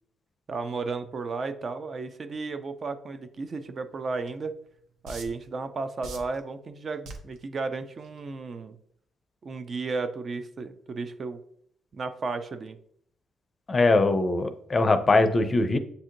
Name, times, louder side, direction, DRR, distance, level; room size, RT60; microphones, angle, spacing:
voice 1, 0.5-4.5 5.0-8.8 9.4-11.4 11.9-12.8, right 4 dB, 45° right, 9 dB, 0.4 m, -34 dB
sound 1, 4.3-4.4 5.1-5.5 6.0-6.4 7.1-7.4 8.0-8.2, right 2 dB, 75° right, 0.7 m, -40 dB
voice 2, 13.7-15.8, left 3 dB, 30° left, 9 dB, 0.5 m, -21 dB
7.7 x 2.7 x 2.5 m, 0.68 s
cardioid pair, 90°, 0 cm